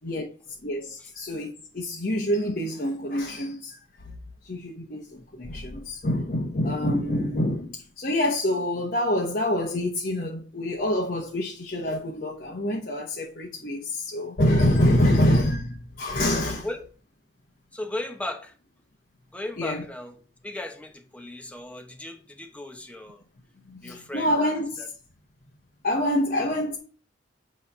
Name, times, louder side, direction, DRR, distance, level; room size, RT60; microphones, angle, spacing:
voice 1, 0.6-3.8 4.1-4.2 4.4-16.7 19.6-19.8 23.7-24.8 25.8-26.8, left 1 dB, 50° left, 0.9 m, -26 dB
voice 2, 16.5-16.8 17.7-18.5 19.3-20.1 20.4-23.2 23.8-24.5, left 1 dB, 5° left, 0.9 m, -36 dB
8.2 x 3.1 x 5.4 m
head